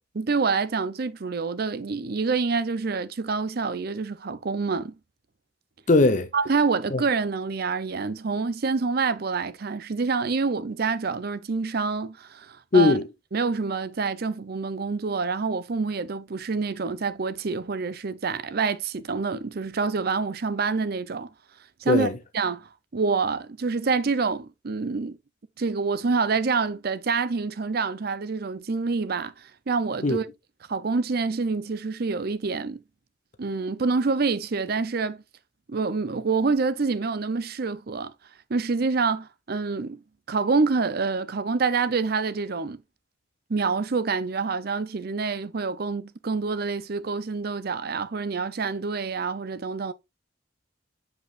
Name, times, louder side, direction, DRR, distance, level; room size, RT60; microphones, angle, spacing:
voice 1, 0.2-4.9 6.3-13.0 13.3-21.3 21.8-25.2 25.6-30.3 30.7-32.8 33.4-35.2 35.7-38.1 38.5-40.0 40.3-42.8 43.5-49.9, right 4 dB, 55° right, 0.6 m, -27 dB
voice 2, 5.9-6.3 6.9-7.0 12.7-13.1 21.9-22.1 30.0-30.2, left 3 dB, 40° left, 0.7 m, -19 dB
8.1 x 5.3 x 2.4 m
head